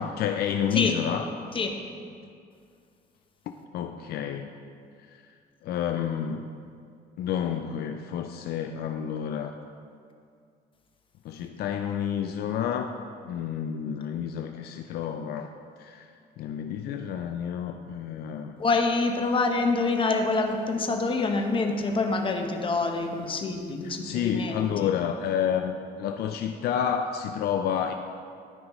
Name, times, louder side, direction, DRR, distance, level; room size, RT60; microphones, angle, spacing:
voice 1, 0.0-1.3 3.7-4.5 5.6-6.5 7.2-9.5 11.2-13.0 13.2-15.5 15.8-16.1 16.4-18.6 23.8-27.9, left 8 dB, 70° left, 6 dB, 0.4 m, -29 dB
voice 2, 18.6-24.9, left 3 dB, 30° left, 3 dB, 0.9 m, -26 dB
13.0 x 5.1 x 3.0 m, 2.3 s
cardioid pair, 110°, 17 cm